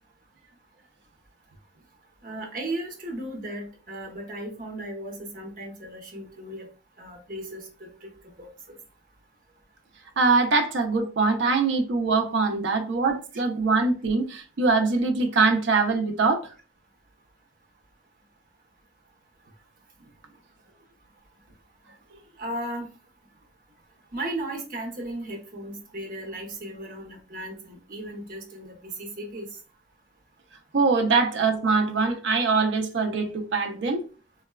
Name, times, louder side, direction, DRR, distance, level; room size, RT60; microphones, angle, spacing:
voice 1, 2.2-6.7 7.0-8.8 22.4-22.9 24.1-29.5, right 1 dB, 45° right, 0.9 m, -36 dB
voice 2, 10.2-16.4 30.7-34.0, right 4 dB, 70° right, 0.5 m, -23 dB
3.8 x 2.2 x 2.2 m
head